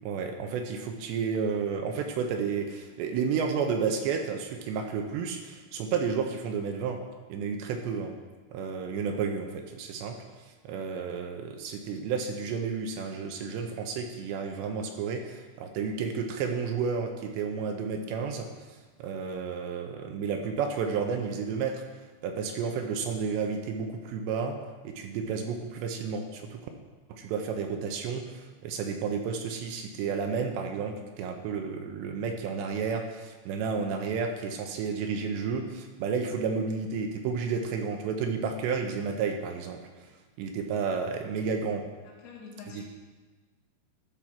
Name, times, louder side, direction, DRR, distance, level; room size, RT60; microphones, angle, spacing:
voice 1, 0.0-7.0 7.3-8.1 8.5-10.2 10.6-18.5 19.0-21.8 22.2-24.6 24.8-26.6 27.1-39.8 40.4-41.8 42.7-42.8, right 5 dB, 80° right, 4 dB, 2.8 m, -31 dB
voice 2, 42.0-42.8, left 5 dB, 75° left, -3 dB, 3.9 m, -47 dB
13.5 x 4.5 x 5.9 m, 1.3 s
omnidirectional pair, 5.3 m